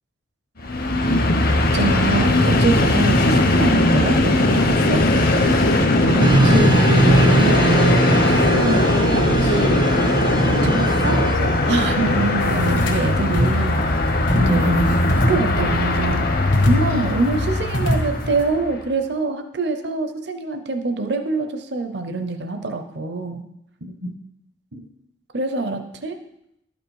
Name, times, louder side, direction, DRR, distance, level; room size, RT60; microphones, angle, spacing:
Train, 0.6-18.7, left 2 dB, 50° left, 0.8 m, -19 dB
voice 1, 1.7-5.0 10.4-10.7 11.7-13.9 14.3-14.7 15.3-16.3 16.6-23.4 25.3-26.2, right 3 dB, 60° right, 6 dB, 0.7 m, -24 dB
voice 2, 5.7-10.0 10.4-11.5 14.4-14.9 24.7-24.8, right 1 dB, 85° right, -2 dB, 1.4 m, -26 dB
sound 1, 6.2-11.4, right 2 dB, 20° right, 0.3 m, -20 dB
sound 2, 12.4-13.1 13.3-13.7 14.3-14.8 15.1-15.9 16.5-17.1 17.7-18.4, equal, 80° left, 1.5 m, -24 dB
11.5 x 5.2 x 4.7 m, 0.81 s
head